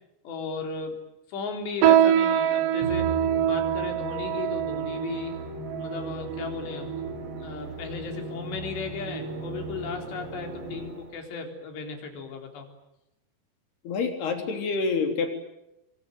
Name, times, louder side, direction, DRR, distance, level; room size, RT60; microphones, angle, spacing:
voice 1, 0.2-1.0 1.3-3.1 3.5-5.4 5.8-6.9 7.4-12.7, left 5 dB, 85° left, 4 dB, 6.0 m, -35 dB
sound 1, 1.8-7.5 8.2-8.3 9.0-9.3 9.7-9.9 10.6-10.7, right 10 dB, 85° right, 3.4 m, -25 dB
Musical instrument, 2.8-11.3, right 3 dB, 30° right, 5.3 m, -38 dB
voice 2, 13.9-15.4, left 4 dB, 70° left, 5 dB, 5.5 m, -27 dB
28.0 x 23.5 x 9.3 m, 0.87 s
omnidirectional pair, 4.8 m